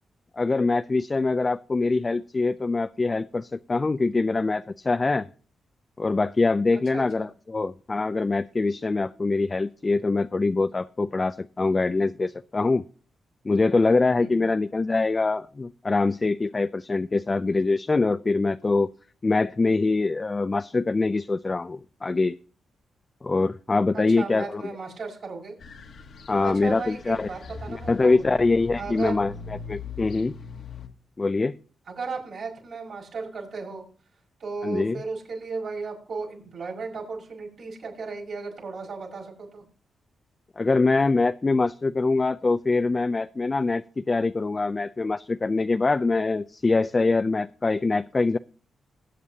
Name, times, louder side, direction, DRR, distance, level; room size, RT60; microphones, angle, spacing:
voice 1, 0.4-5.3 6.0-12.8 13.4-18.9 19.2-22.4 23.2-24.6 26.3-27.3 27.7-29.3 29.7-30.3 31.2-31.6 34.6-35.0 40.6-48.4, left 3 dB, 30° left, 11 dB, 0.4 m, -24 dB
voice 2, 6.7-7.3 14.2-14.5 23.9-25.6 26.4-28.2 28.8-29.2 31.9-33.8 34.4-39.6, right 4 dB, 70° right, -2 dB, 6.2 m, -35 dB
sound 1, 25.6-30.9, left 5 dB, 65° left, 1.3 m, -41 dB
20.0 x 8.1 x 2.9 m, 0.40 s
cardioid pair, 70°, 0 cm